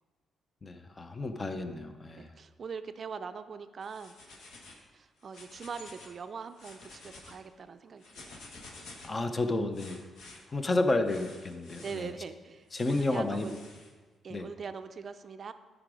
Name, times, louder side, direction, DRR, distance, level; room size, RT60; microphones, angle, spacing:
voice 1, 0.6-2.3 9.0-10.0 10.5-12.1 12.7-13.5 14.3-14.5, left 2 dB, 25° left, 8 dB, 0.6 m, -31 dB
voice 2, 2.2-4.2 4.9-8.4 11.8-13.5 14.2-15.5, right 5 dB, 40° right, 10 dB, 0.5 m, -42 dB
sound 1, 3.8-4.8 5.2-6.2 6.5-7.4 8.0-9.2 9.7-10.4 11.0-12.0 12.7-13.9, left 2 dB, 80° left, 1.6 m, -51 dB
12.5 x 5.0 x 4.9 m, 1.4 s
cardioid pair, 145°, 0 cm